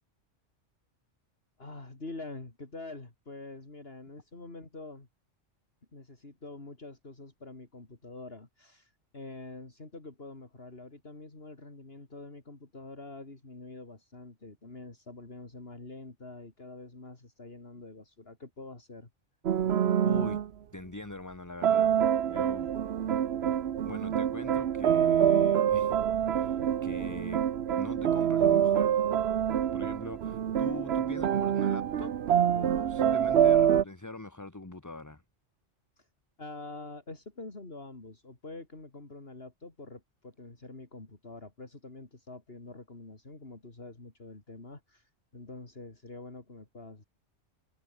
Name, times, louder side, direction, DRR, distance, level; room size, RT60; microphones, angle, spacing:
voice 1, 1.6-5.1 5.9-19.1 36.0-36.1 36.4-47.0, left 2 dB, 50° left, 3.7 m, -46 dB
sound 1, 19.4-20.5 21.6-33.8, right 9 dB, 60° right, 1.0 m, -26 dB
voice 2, 20.0-20.4 20.7-21.9 22.3-22.7 23.5-23.6 23.8-26.0 26.3-27.4 27.8-28.9 29.7-32.1 32.5-35.2, left 2 dB, 15° left, 1.3 m, -42 dB
omnidirectional pair, 1.3 m